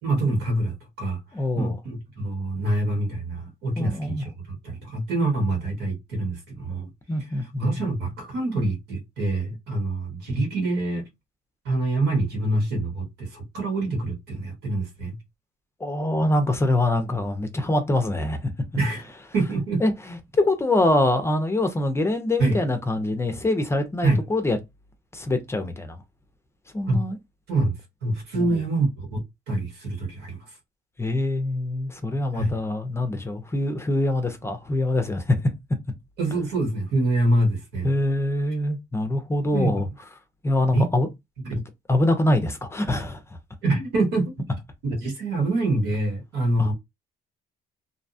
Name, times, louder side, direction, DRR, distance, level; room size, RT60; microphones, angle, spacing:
voice 1, 0.0-1.2 1.6-6.9 7.3-11.0 11.6-15.2 18.8-19.0 19.3-19.8 22.4-22.6 24.0-24.2 26.9-27.0 27.5-27.7 28.0-29.2 29.5-30.4 32.3-32.5 36.2-37.9 38.5-38.6 39.5-39.7 40.7-40.9 41.4-41.6 43.6-44.3 44.8-46.7, right 2 dB, 80° right, 1.4 m, -25 dB
voice 2, 1.3-1.8 3.8-4.2 7.1-7.9 15.8-18.5 19.8-24.6 25.1-26.0 26.7-27.2 28.3-28.6 31.0-35.4 37.8-39.9 40.4-41.1 41.5-41.6 41.9-43.2 46.6-46.7, left 1 dB, 15° left, 0.5 m, -24 dB
2.6 x 2.2 x 2.6 m
cardioid pair, 110°, 17 cm